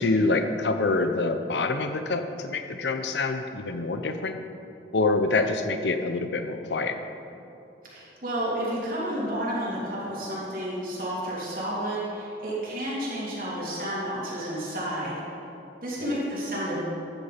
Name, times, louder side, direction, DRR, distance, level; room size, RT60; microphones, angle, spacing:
voice 1, 0.0-4.4 4.9-7.0 16.0-16.2, left 3 dB, 80° left, 7 dB, 0.7 m, -26 dB
voice 2, 7.9-15.2 15.8-16.8, right 1 dB, 50° right, -8 dB, 3.1 m, -31 dB
14.5 x 9.6 x 5.1 m, 2.8 s
head